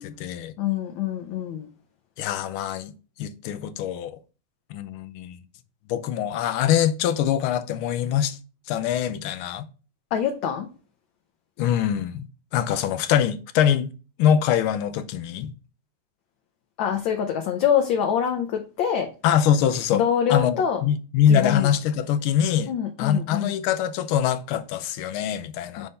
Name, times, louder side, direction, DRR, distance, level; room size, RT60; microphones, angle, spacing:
voice 1, 0.0-0.5 2.2-2.9 3.2-4.2 4.7-5.4 5.9-8.4 8.7-9.7 11.6-13.9 14.2-15.5 19.2-20.0 20.3-22.7 23.0-25.9, left 9 dB, 90° left, 1.5 m, -23 dB
voice 2, 0.6-1.7 10.1-10.7 16.8-19.1 19.9-20.8 21.3-21.7 22.7-23.5 25.8-25.9, left 8 dB, 70° left, 1.4 m, -25 dB
6.6 x 3.5 x 4.1 m
omnidirectional pair, 2.3 m